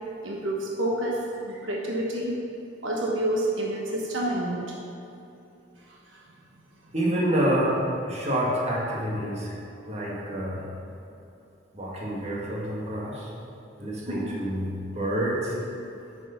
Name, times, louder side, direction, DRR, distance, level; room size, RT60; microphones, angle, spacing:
voice 1, 0.2-1.2 1.5-2.4 2.8-4.7 5.9-6.2 14.1-14.4, right 1 dB, 75° right, -2 dB, 1.1 m, -29 dB
voice 2, 6.9-9.5 9.9-10.6 11.7-13.3 13.8-15.6, right 1 dB, 35° right, -5 dB, 1.8 m, -27 dB
9.5 x 6.4 x 5.7 m, 2.8 s
head